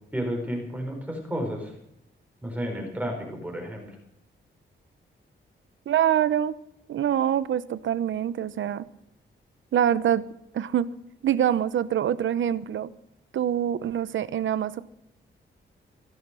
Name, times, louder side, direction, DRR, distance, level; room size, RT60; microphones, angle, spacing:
voice 1, 0.1-1.7 2.4-4.0, equal, 10° right, 1 dB, 4.5 m, -32 dB
voice 2, 5.9-6.6 6.9-8.9 9.7-10.3 10.5-10.9 11.2-12.9 13.3-14.8, right 10 dB, 70° right, 16 dB, 0.9 m, -25 dB
16.5 x 12.0 x 6.3 m, 0.77 s
wide cardioid pair, 160°, 20 cm